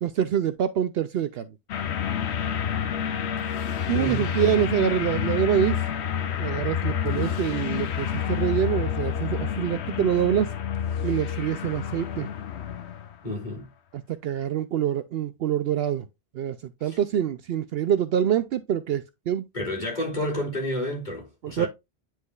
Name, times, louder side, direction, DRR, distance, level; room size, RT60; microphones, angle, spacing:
voice 1, 0.0-1.5 3.9-5.8 6.4-10.5 11.0-12.3 13.9-16.1 16.3-16.6 16.8-19.4 21.4-21.7, right 9 dB, 70° right, 0.7 m, -25 dB
sound 1, 1.7-13.1, left 8 dB, 75° left, 1.0 m, -29 dB
voice 2, 3.9-4.4 13.2-13.7 16.8-17.0 19.5-21.7, left 1 dB, 45° left, 3.0 m, -30 dB
9.6 x 4.5 x 2.4 m
omnidirectional pair, 1.1 m